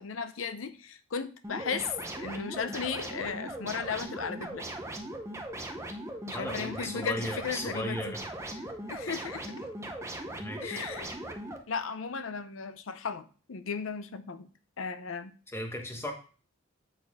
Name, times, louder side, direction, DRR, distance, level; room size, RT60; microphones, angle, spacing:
voice 1, 0.0-1.9 2.2-4.6 6.3-8.1 8.9-9.6 10.6-11.1 11.7-14.5 14.8-15.3, left 5 dB, 75° left, 11 dB, 0.6 m, -36 dB
sound 1, 1.4-11.6, right 1 dB, 15° right, 0.8 m, -39 dB
voice 2, 6.3-8.2 10.4-10.8 15.5-16.1, equal, 15° left, 3 dB, 1.1 m, -36 dB
8.2 x 4.2 x 3.5 m, 0.39 s
head